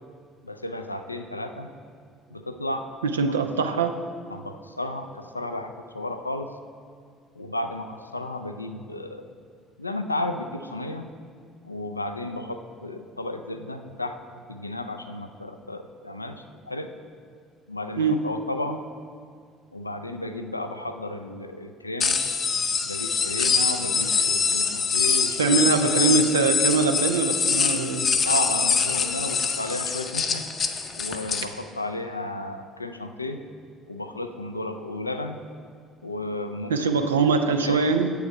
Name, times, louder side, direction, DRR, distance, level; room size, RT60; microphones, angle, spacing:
voice 1, 0.4-1.7 2.3-2.9 4.3-6.5 7.4-9.3 9.8-11.1 11.6-16.9 17.7-18.8 19.7-22.2 22.8-26.2 28.2-30.4 31.0-33.4 33.9-35.4 36.0-36.9 37.6-38.0, left 1 dB, 85° left, 7 dB, 0.3 m, -33 dB
voice 2, 3.0-3.9 18.0-18.2 25.4-28.1 36.7-38.1, right 4 dB, 80° right, 7 dB, 0.4 m, -22 dB
sound 1, 22.0-31.5, left 5 dB, 40° left, 0.6 m, -24 dB
8.0 x 6.9 x 4.6 m, 2.1 s
figure-of-eight pair, 55°, 0 cm